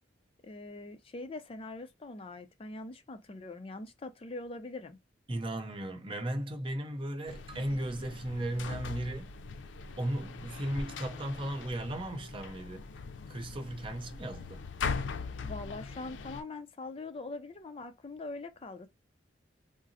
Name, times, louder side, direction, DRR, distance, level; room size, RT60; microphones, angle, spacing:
voice 1, 0.4-5.0 15.4-18.9, left 2 dB, 30° left, 0.4 m, -42 dB
voice 2, 5.3-9.3 10.0-12.9 13.3-14.6, right 1 dB, 30° right, 0.6 m, -36 dB
sound 1, 7.3-16.4, left 5 dB, 90° left, 0.4 m, -41 dB
3.7 x 2.0 x 2.6 m
head